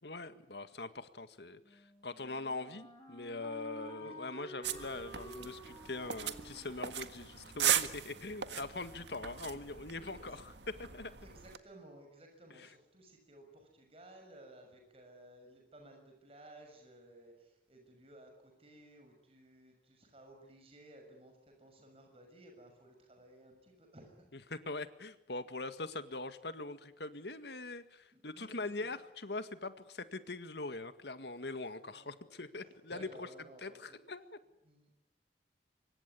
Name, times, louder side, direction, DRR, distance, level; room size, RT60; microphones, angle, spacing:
voice 1, 0.0-11.1 12.5-12.7 24.3-33.3 33.6-34.3, left 3 dB, 75° left, 11 dB, 1.9 m, -42 dB
Wind instrument woodwind instrument, 1.6-8.5, equal, 20° left, 6.9 m, -52 dB
sound 1, 4.6-11.6, right 10 dB, 85° right, 1.7 m, -38 dB
voice 2, 11.2-24.3 28.1-28.9 31.9-34.0 34.6-34.9, right 1 dB, 35° right, 3 dB, 6.6 m, -57 dB
25.5 x 23.5 x 9.8 m, 0.83 s
head